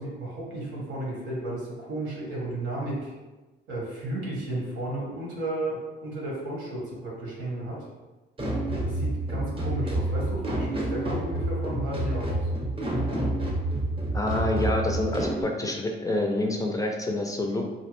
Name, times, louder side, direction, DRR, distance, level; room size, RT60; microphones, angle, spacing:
voice 1, 0.0-3.1 3.7-7.9 8.8-12.5, right 1 dB, 85° right, -4 dB, 1.1 m, -33 dB
sound 1, 8.4-15.4, right 1 dB, 25° right, 0.7 m, -28 dB
voice 2, 14.1-17.6, left 2 dB, 15° left, 2 dB, 0.3 m, -27 dB
2.6 x 2.0 x 2.9 m, 1.2 s
cardioid pair, 90°, 20 cm